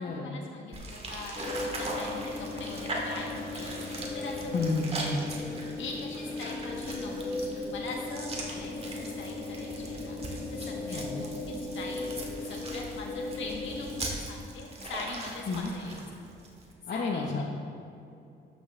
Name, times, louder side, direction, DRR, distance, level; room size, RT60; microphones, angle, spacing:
voice 1, 0.0-4.6 5.8-12.1 12.4-16.0 16.9-17.4, left 3 dB, 75° left, 0 dB, 1.5 m, -42 dB
sound 1, 0.7-16.7, right 2 dB, 30° right, 1.7 m, -40 dB
sound 2, 1.3-14.1, left 2 dB, 25° left, 1.2 m, -37 dB
voice 2, 4.5-5.1 10.9-11.2 15.5-15.7 16.9-17.4, left 3 dB, 50° left, 0 dB, 1.0 m, -31 dB
12.5 x 6.3 x 3.3 m, 2.6 s
cardioid pair, 90°, 20 cm